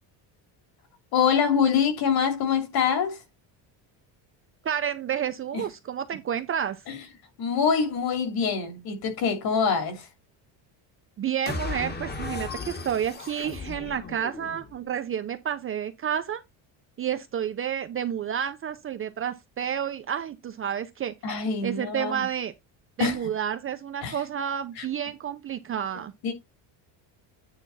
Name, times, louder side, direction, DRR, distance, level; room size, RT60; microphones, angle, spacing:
voice 1, 1.1-3.2 5.5-5.6 6.9-7.0 7.4-10.1 21.2-22.3 23.0-23.2 24.0-24.2 24.8-24.9 26.2-26.3, left 6 dB, 50° left, 2.6 m, -25 dB
voice 2, 4.6-6.8 11.2-16.4 17.0-21.1 21.6-22.5 23.0-26.1, right 9 dB, 30° right, 0.5 m, -30 dB
sound 1, 11.5-14.8, left 4 dB, 20° left, 1.2 m, -36 dB
9.4 x 3.4 x 5.5 m
cardioid pair, 165°, 46 cm